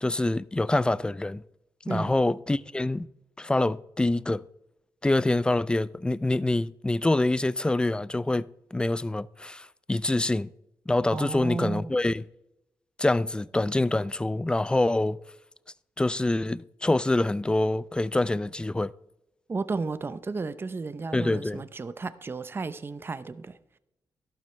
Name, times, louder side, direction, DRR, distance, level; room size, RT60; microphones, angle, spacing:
voice 1, 0.0-1.4 1.9-3.1 3.4-4.4 5.0-10.5 10.9-12.2 13.0-15.2 16.0-18.9 21.1-21.6, left 2 dB, 10° left, 0.3 m, -26 dB
voice 2, 11.1-11.9 19.5-23.6, right 4 dB, 30° right, 0.6 m, -33 dB
12.5 x 12.0 x 3.3 m
cardioid pair, 80°, 7 cm